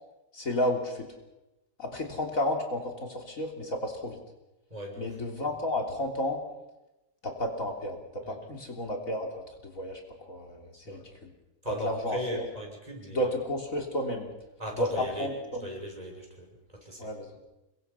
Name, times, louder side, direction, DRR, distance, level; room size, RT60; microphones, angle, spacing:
voice 1, 0.3-1.1 1.8-4.2 5.0-6.4 7.2-11.3 11.7-12.5 13.1-14.3 14.8-15.7 17.0-17.4, left 1 dB, 60° left, 1 dB, 3.7 m, -32 dB
voice 2, 4.7-5.1 8.2-8.4 10.8-11.0 11.6-13.2 14.6-15.3 15.6-16.5 16.8-17.0, left 1 dB, 25° right, 0 dB, 6.6 m, -37 dB
28.5 x 23.5 x 5.7 m, 0.98 s
omnidirectional pair, 1.6 m